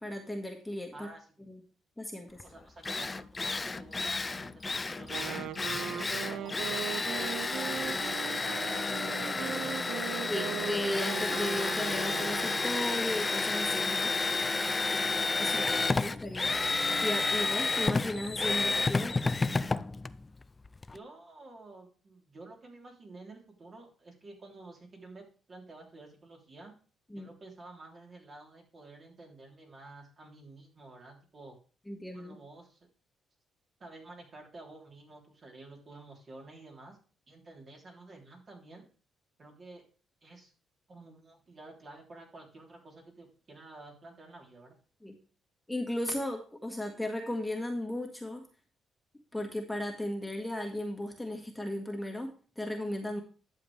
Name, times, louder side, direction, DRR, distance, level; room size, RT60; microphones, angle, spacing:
voice 1, 0.0-1.1 1.5-1.6 2.0-2.4 10.3-14.1 15.4-15.6 15.9-16.6 17.0-19.1 27.1-27.3 31.9-32.4 45.0-45.2 45.7-48.5 49.3-53.2, left 1 dB, 5° left, 1 dB, 1.7 m, -36 dB
voice 2, 0.9-1.3 2.4-5.4 5.8-9.9 15.4-15.9 20.9-26.7 27.2-31.6 32.1-32.9 33.8-37.0 37.3-38.9 39.4-39.8 40.2-40.5 40.9-44.8, right 2 dB, 40° right, 0 dB, 3.4 m, -51 dB
Drill, 2.4-2.5 2.8-21.0, left 3 dB, 25° left, 0.4 m, -31 dB
Wind instrument woodwind instrument, 5.0-12.9, right 11 dB, 80° right, 0.4 m, -39 dB
11.0 x 7.2 x 3.3 m, 0.37 s
cardioid pair, 90°, 0 cm